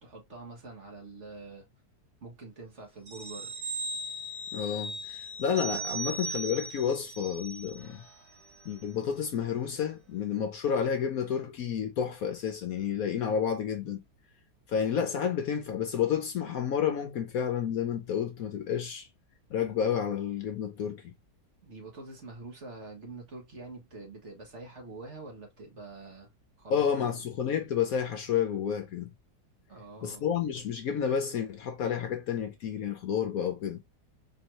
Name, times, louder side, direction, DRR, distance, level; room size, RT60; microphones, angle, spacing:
voice 1, 0.0-1.7 2.2-3.5 21.6-26.3 26.6-27.2 29.7-30.3, right 3 dB, 45° right, 1.4 m, -45 dB
sound 1, 3.1-8.2 8.5-8.6, right 2 dB, 60° right, 2.2 m, -38 dB
voice 2, 4.5-8.0 8.6-14.0 14.7-19.1 19.5-21.1 26.7-29.1 30.0-33.8, left 8 dB, 65° left, 1.0 m, -30 dB
4.5 x 2.7 x 3.0 m
omnidirectional pair, 1.8 m